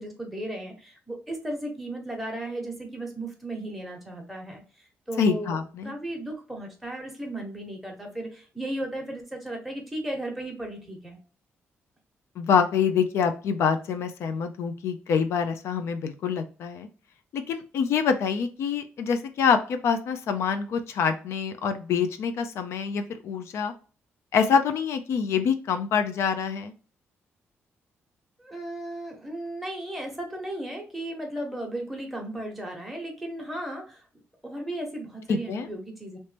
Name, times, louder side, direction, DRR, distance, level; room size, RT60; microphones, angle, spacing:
voice 1, 0.0-11.2 28.4-34.1 34.4-36.2, right 1 dB, ahead, 0 dB, 1.0 m, -35 dB
voice 2, 5.2-5.9 12.4-16.9 17.3-23.7 24.3-26.7 35.3-35.7, left 6 dB, 75° left, 8 dB, 0.4 m, -26 dB
3.1 x 2.9 x 3.2 m, 0.38 s
cardioid pair, 160°, 5 cm